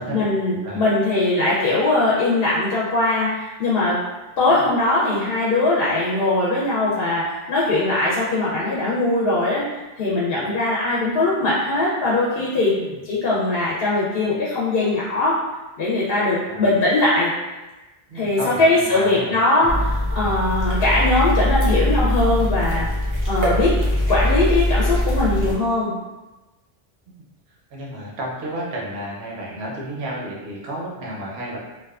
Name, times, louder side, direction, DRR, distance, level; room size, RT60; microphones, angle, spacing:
voice 1, 0.1-4.0 4.4-9.6 10.0-12.7 13.0-15.4 15.8-17.3 18.1-19.7 20.2-22.9 23.3-23.7 24.1-25.9, left 2 dB, 70° left, -6 dB, 0.7 m, -20 dB
voice 2, 18.1-19.4 27.5-31.6, right 1 dB, 90° right, -4 dB, 0.9 m, -32 dB
sound 1, 19.7-25.5, left 1 dB, 25° right, 0.5 m, -21 dB
2.5 x 2.2 x 2.3 m, 1.1 s
omnidirectional pair, 1.0 m